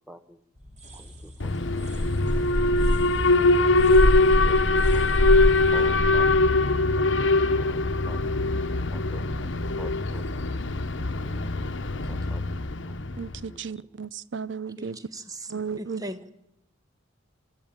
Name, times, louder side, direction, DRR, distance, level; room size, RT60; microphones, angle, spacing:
voice 1, 0.1-0.4 1.0-1.8 3.6-5.1 5.7-6.3 6.9-7.3 7.7-7.8 8.1-8.3 8.9-9.3 9.8-10.6 11.2-11.7 12.1-12.9 13.5-13.6, equal, 5° right, 11 dB, 1.0 m, -47 dB
sound 1, 0.5-7.4, equal, 35° right, 5.0 m, -45 dB
Alarm, 1.4-13.4, left 2 dB, 65° left, 1.1 m, -22 dB
voice 2, 13.2-15.0 15.5-16.0, right 6 dB, 65° right, 19 dB, 0.7 m, -34 dB
voice 3, 15.8-16.3, right 1 dB, 20° right, 11 dB, 1.3 m, -37 dB
25.5 x 13.0 x 8.9 m, 0.82 s
head